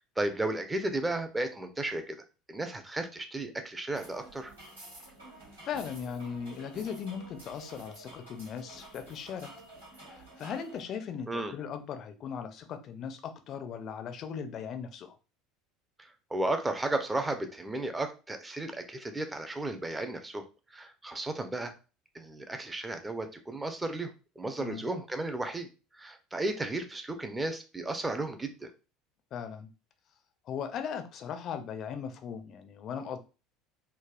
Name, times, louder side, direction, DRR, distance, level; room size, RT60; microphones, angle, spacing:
voice 1, 0.2-2.2 2.5-4.5 11.3-11.5 16.0-20.4 20.7-21.7 22.1-25.7 26.0-28.7, right 2 dB, 15° right, 7 dB, 0.5 m, -34 dB
sound 1, 4.0-10.8, right 1 dB, 80° right, 1.3 m, -50 dB
voice 2, 5.7-9.5 10.0-15.2 24.6-24.8 29.3-29.7 30.5-33.2, left 7 dB, 40° left, 8 dB, 0.4 m, -38 dB
3.3 x 2.3 x 2.2 m, 0.32 s
figure-of-eight pair, 65°, 0 cm